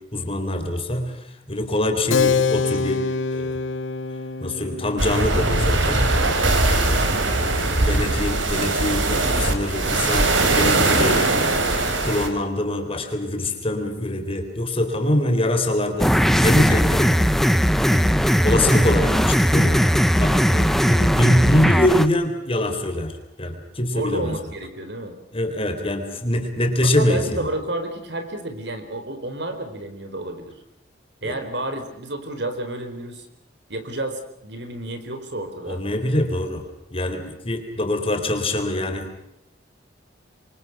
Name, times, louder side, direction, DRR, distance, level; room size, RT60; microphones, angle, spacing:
voice 1, 0.1-3.0 3.3-3.6 4.4-6.2 6.7-7.1 7.7-11.4 11.8-17.2 17.9-18.1 18.4-19.9 20.2-23.1 23.4-24.3 25.3-27.4 31.2-31.3 35.7-36.6 36.9-39.1, left 1 dB, 30° left, 6 dB, 3.8 m, -24 dB
Keyboard (musical), 2.1-8.2, left 4 dB, 80° left, 1.1 m, -27 dB
sound 1, 5.0-12.3, right 2 dB, 80° right, 3.9 m, -20 dB
voice 2, 7.0-7.4 23.9-25.2 26.8-30.5 31.2-33.3 33.7-35.8, right 1 dB, 65° right, 8 dB, 4.3 m, -31 dB
sound 2, 16.0-22.1, equal, ahead, 0.9 m, -18 dB
27.5 x 24.5 x 6.0 m, 0.84 s
head